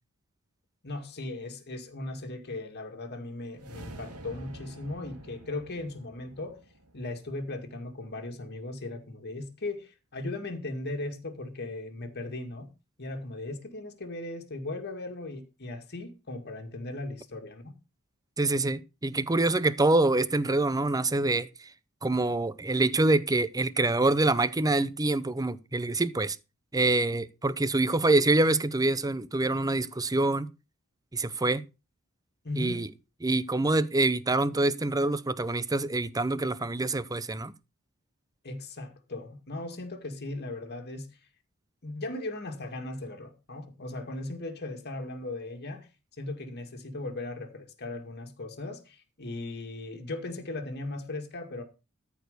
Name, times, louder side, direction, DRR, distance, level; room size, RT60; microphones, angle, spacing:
voice 1, 0.8-6.6 6.9-12.7 13.0-17.7 32.4-32.9 38.4-41.1 41.8-45.9 46.2-51.6, left 2 dB, 50° left, 2.2 m, -37 dB
sound 1, 3.5-7.9, right 1 dB, 85° right, 2.1 m, -48 dB
voice 2, 18.4-21.7 22.0-26.4 26.7-30.5 31.1-31.6 32.6-32.9 33.2-37.5, right 2 dB, 15° right, 0.7 m, -26 dB
13.5 x 4.8 x 6.7 m
head